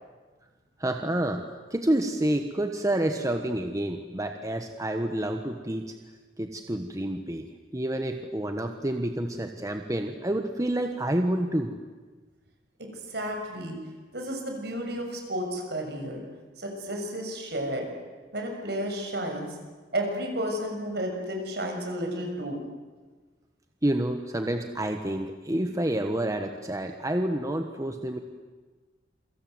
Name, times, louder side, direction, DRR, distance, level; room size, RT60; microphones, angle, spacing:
voice 1, 0.8-5.9 6.4-7.5 7.7-11.7 23.8-28.2, right 1 dB, 20° right, 5 dB, 1.3 m, -28 dB
voice 2, 12.8-13.8 14.1-16.2 16.6-17.9 18.3-19.5 19.9-22.6, equal, 60° right, 3 dB, 6.6 m, -32 dB
27.5 x 25.0 x 8.0 m, 1.3 s
head